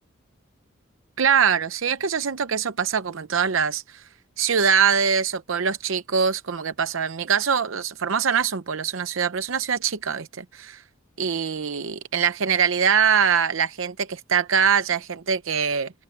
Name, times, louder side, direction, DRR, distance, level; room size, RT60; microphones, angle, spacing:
voice 1, 1.2-4.0 4.4-10.8 11.2-15.9, right 7 dB, 80° right, 0.7 m, -23 dB
open air
head